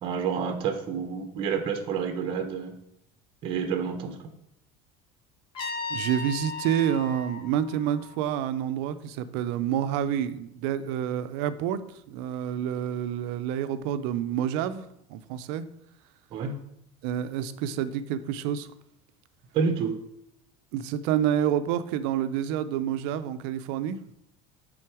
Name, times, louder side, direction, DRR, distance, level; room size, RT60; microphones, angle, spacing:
voice 1, 0.0-2.7 3.4-4.2 16.3-16.5 19.5-19.9, right 6 dB, 35° right, 7 dB, 0.8 m, -29 dB
Trumpet, 5.5-8.5, left 3 dB, 35° left, 1.0 m, -36 dB
voice 2, 5.9-11.8 12.1-14.8 15.1-15.7 17.0-18.7 20.7-24.0, right 10 dB, 70° right, 11 dB, 0.5 m, -28 dB
7.6 x 3.9 x 4.8 m, 0.77 s
cardioid pair, 165°, 14 cm